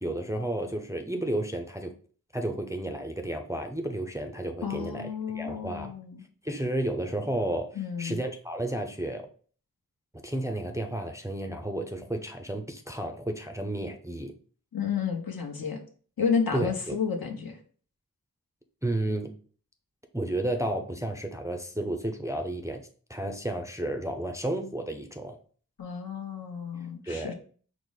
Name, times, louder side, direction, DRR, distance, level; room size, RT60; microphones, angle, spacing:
voice 1, 0.0-1.9 2.3-6.0 6.4-9.3 10.2-14.3 16.5-16.9 18.8-19.3 20.1-22.8 23.1-25.4 27.1-27.3, right 1 dB, 10° right, 4 dB, 0.4 m, -32 dB
voice 2, 4.6-6.2 7.8-8.2 14.7-15.8 16.2-17.6 25.8-27.3, left 6 dB, 70° left, 3 dB, 0.9 m, -31 dB
4.7 x 2.0 x 3.9 m, 0.43 s
wide cardioid pair, 60°, 36 cm